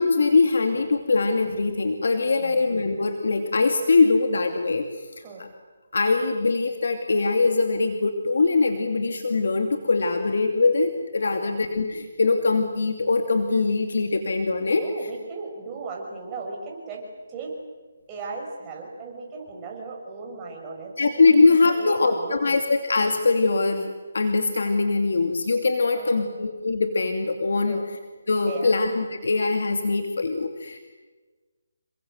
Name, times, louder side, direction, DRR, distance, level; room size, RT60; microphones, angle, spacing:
voice 1, 0.0-4.9 5.4-5.5 5.9-14.8 21.0-27.8 28.3-30.8, left 3 dB, 70° left, 6 dB, 2.5 m, -22 dB
voice 2, 11.2-11.6 14.7-17.5 18.1-21.4 21.7-22.6 25.9-26.3 27.6-27.9 28.5-28.7, right 4 dB, 15° right, -1 dB, 6.3 m, -37 dB
29.0 x 23.5 x 8.0 m, 1.3 s
hypercardioid pair, 165°, 0 cm